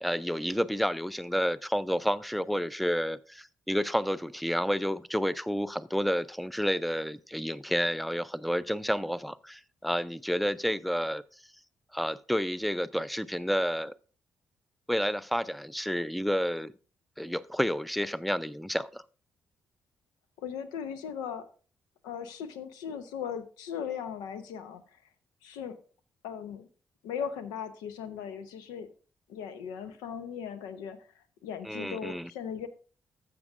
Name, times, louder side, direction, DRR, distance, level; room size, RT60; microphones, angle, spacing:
voice 1, 0.0-11.2 11.9-13.9 14.9-16.7 17.2-19.0 31.6-32.3, equal, ahead, 0.5 m, -30 dB
voice 2, 20.4-21.4 22.0-24.8 25.4-25.8 26.2-26.7 27.0-28.9 29.3-32.7, left 7 dB, 75° left, 0.8 m, -38 dB
13.0 x 7.5 x 2.5 m
hypercardioid pair, 40°, 7 cm